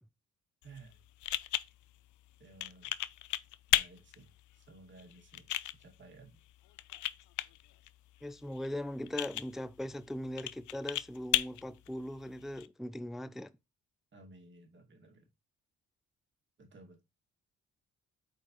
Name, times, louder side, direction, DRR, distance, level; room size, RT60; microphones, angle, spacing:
sound 1, 0.6-12.7, left 15 dB, 75° left, 0.5 m, -37 dB
voice 1, 0.6-1.0 2.4-2.9 3.7-5.5 5.8-6.4 14.1-15.3 16.6-17.0, right 3 dB, 40° right, 2.1 m, -56 dB
voice 2, 8.2-13.5, left 1 dB, ahead, 0.3 m, -40 dB
8.3 x 4.6 x 3.0 m
cardioid pair, 90°, 30 cm